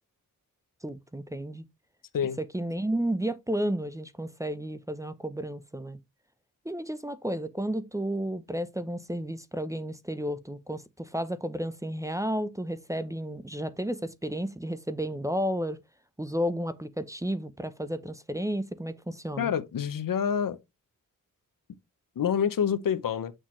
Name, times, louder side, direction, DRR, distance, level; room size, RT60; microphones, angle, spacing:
voice 1, 0.8-1.7 2.5-6.0 6.6-15.8 16.2-19.5, equal, 10° right, 0.6 m, -32 dB
voice 2, 19.4-20.6 22.2-23.3, left 8 dB, 75° left, 0.8 m, -27 dB
6.4 x 6.0 x 3.1 m
wide cardioid pair, 100°, 34 cm